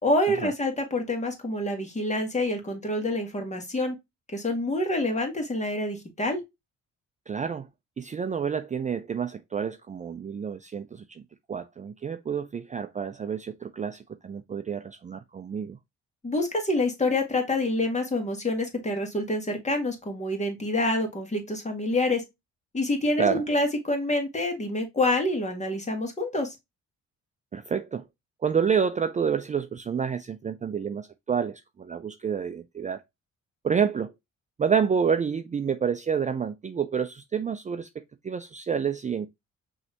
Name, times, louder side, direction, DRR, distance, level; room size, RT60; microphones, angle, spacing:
voice 1, 0.0-3.9 4.3-6.4 16.2-22.2 22.7-26.5, left 1 dB, 25° left, 1.9 m, -27 dB
voice 2, 7.3-7.7 8.0-11.2 11.5-15.8 23.2-23.4 27.5-28.1 28.4-33.0 33.6-34.1 34.6-39.3, right 7 dB, 25° right, 0.4 m, -29 dB
5.5 x 3.3 x 2.8 m
cardioid pair, 90°, 30 cm